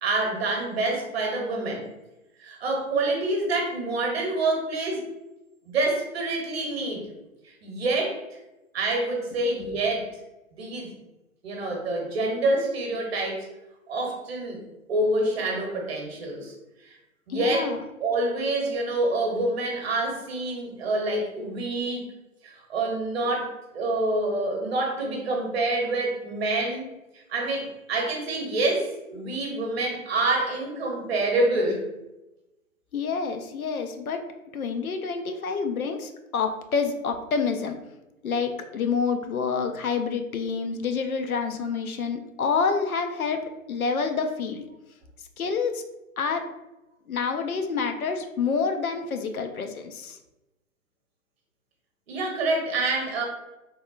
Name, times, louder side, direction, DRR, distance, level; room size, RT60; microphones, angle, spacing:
voice 1, 0.0-1.8 2.4-5.0 5.6-7.1 7.4-8.4 8.7-10.1 10.6-10.9 11.4-13.5 13.9-14.6 14.9-16.5 16.8-17.0 17.3-17.7 18.0-22.1 22.4-26.9 27.3-31.9 52.1-53.2, right 2 dB, 45° right, 1 dB, 0.9 m, -27 dB
voice 2, 17.3-17.8 32.9-34.3 34.5-37.8 38.2-44.6 45.4-45.8 46.2-46.5 47.1-50.2, left 5 dB, 90° left, 6 dB, 0.5 m, -28 dB
3.4 x 2.1 x 2.4 m, 0.99 s
figure-of-eight pair, 125°, 42 cm